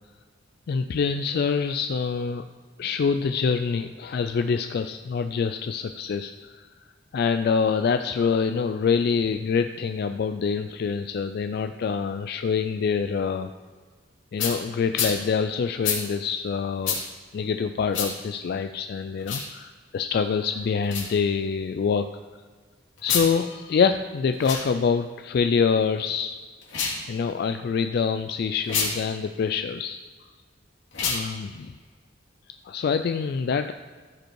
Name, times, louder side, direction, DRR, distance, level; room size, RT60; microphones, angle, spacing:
voice 1, 0.7-2.4 2.8-6.7 7.1-13.5 14.3-17.0 17.3-22.1 23.0-26.4 27.1-30.0 31.0-31.7 32.6-33.7, left 6 dB, 55° left, 8 dB, 0.3 m, -25 dB
sound 1, 14.4-14.6 14.9-15.1 15.8-16.0 16.8-17.0 17.9-18.1 19.2-19.5 20.8-21.1 23.0-23.3 24.3-24.6 26.6-27.0 28.6-28.9 30.9-31.2, left 6 dB, 75° left, 2.5 m, -27 dB
15.0 x 5.2 x 4.6 m, 1.6 s
head